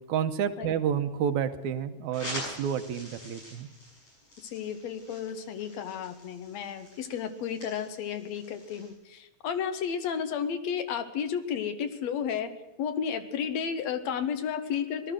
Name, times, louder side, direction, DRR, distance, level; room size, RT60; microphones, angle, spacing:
voice 1, 0.1-3.7, right 8 dB, 80° right, 8 dB, 2.2 m, -30 dB
sound 1, 2.1-8.9, equal, 50° left, 8.1 m, -45 dB
voice 2, 4.4-12.5 12.8-15.1, left 7 dB, 70° left, 9 dB, 2.0 m, -32 dB
18.5 x 12.5 x 6.3 m, 1.0 s
omnidirectional pair, 3.4 m